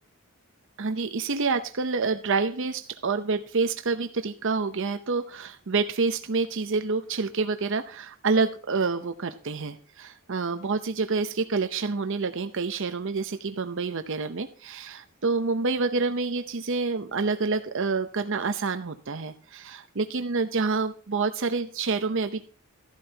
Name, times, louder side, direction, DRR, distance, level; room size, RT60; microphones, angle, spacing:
voice 1, 0.8-22.4, right 4 dB, 60° right, 9 dB, 0.7 m, -28 dB
14.0 x 11.5 x 2.8 m, 0.38 s
head